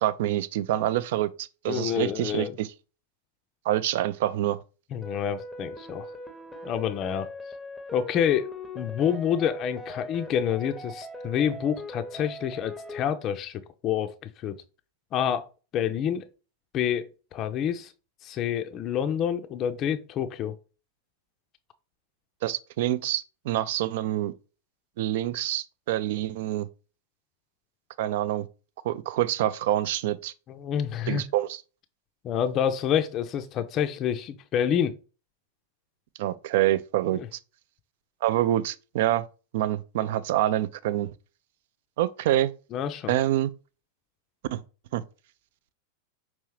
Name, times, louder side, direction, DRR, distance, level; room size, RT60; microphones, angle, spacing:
voice 1, 0.0-2.7 3.7-4.6 22.4-24.3 25.0-26.7 28.0-28.5 28.8-30.3 31.1-31.6 36.2-37.4 38.2-39.3 39.5-41.1 42.0-42.5 43.1-43.5 44.5-44.6 44.9-45.0, right 13 dB, 55° right, 0.3 m, -26 dB
voice 2, 1.7-2.5 4.9-6.1 6.6-7.3 7.9-8.5 8.7-14.1 14.4-14.6 15.1-15.5 15.7-16.3 16.7-17.9 18.2-20.5 30.5-31.2 32.2-34.9 42.7-43.1, left 9 dB, 35° left, 0.4 m, -28 dB
sound 1, 5.0-13.0, left 1 dB, ahead, 0.7 m, -40 dB
5.5 x 3.0 x 3.1 m
figure-of-eight pair, 90°, 0 cm